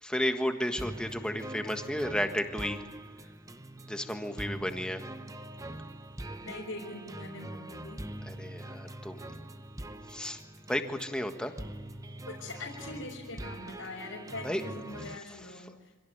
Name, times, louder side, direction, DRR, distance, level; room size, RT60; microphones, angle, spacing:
voice 1, 0.0-2.8 3.9-5.0 8.2-9.3 10.1-10.4 10.7-11.5 14.4-14.6 15.0-15.7, equal, 5° left, 6 dB, 1.5 m, -33 dB
sound 1, 0.8-15.2, right 1 dB, 15° right, 0.8 m, -43 dB
voice 2, 6.4-8.0 12.3-15.7, left 2 dB, 90° left, -4 dB, 4.4 m, -42 dB
26.0 x 17.0 x 9.4 m, 1.4 s
head